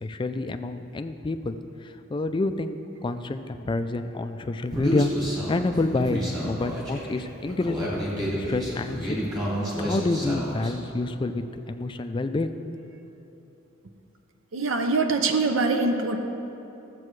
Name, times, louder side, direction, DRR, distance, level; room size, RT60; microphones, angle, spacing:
voice 1, 0.0-8.0 8.4-9.3 9.8-12.9, left 2 dB, 25° left, 8 dB, 0.3 m, -28 dB
Human voice, 4.7-10.7, equal, 20° right, 1.8 m, -30 dB
voice 2, 14.5-16.2, right 3 dB, 75° right, 6 dB, 0.6 m, -23 dB
13.5 x 7.6 x 3.2 m, 3.0 s
head